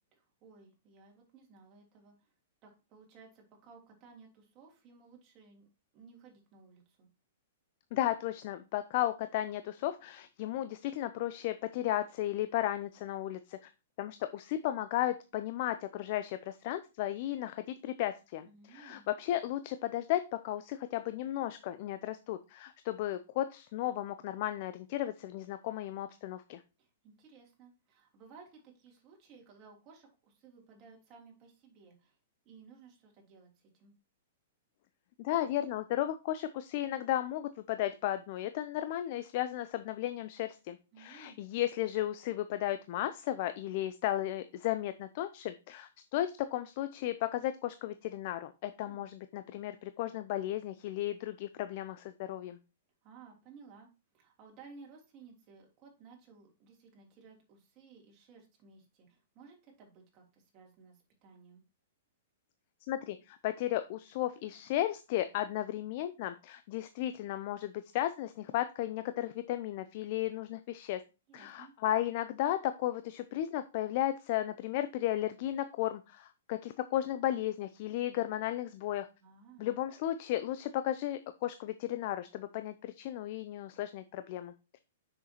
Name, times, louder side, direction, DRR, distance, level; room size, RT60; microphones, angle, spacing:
voice 1, 0.1-2.3 2.6-5.7 5.9-7.1 18.4-19.1 26.8-32.2 32.4-33.9 40.9-41.4 48.8-49.0 53.0-53.9 54.1-61.6 71.3-71.7 79.2-79.7, right 5 dB, 35° right, 0 dB, 3.1 m, -57 dB
voice 2, 7.9-13.6 14.0-26.6 35.2-52.6 62.9-71.0 71.3-79.1 79.6-84.5, left 13 dB, 50° left, 11 dB, 0.5 m, -34 dB
7.2 x 6.4 x 2.9 m, 0.29 s
hypercardioid pair, 120°, 0 cm